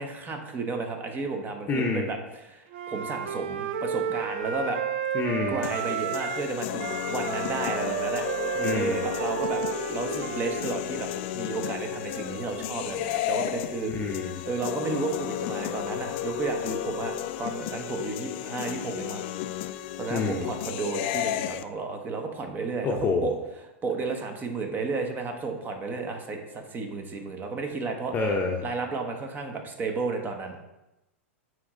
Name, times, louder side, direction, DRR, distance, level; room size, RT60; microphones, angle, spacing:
voice 1, 0.0-4.8 5.5-9.6 9.9-19.2 20.0-23.4 23.8-28.1 28.6-30.6, right 4 dB, 25° right, 4 dB, 1.1 m, -33 dB
voice 2, 1.7-2.1 5.1-5.6 8.6-9.1 13.9-14.4 20.1-20.5 22.8-23.3 28.1-28.6, left 4 dB, 25° left, 0 dB, 0.8 m, -27 dB
Wind instrument woodwind instrument, 2.7-6.5 6.8-10.6, right 8 dB, 65° right, 0.5 m, -32 dB
sound 1, 5.6-21.6, left 13 dB, 55° left, 0.4 m, -33 dB
9.2 x 3.2 x 3.8 m, 0.95 s
hypercardioid pair, 105°, 7 cm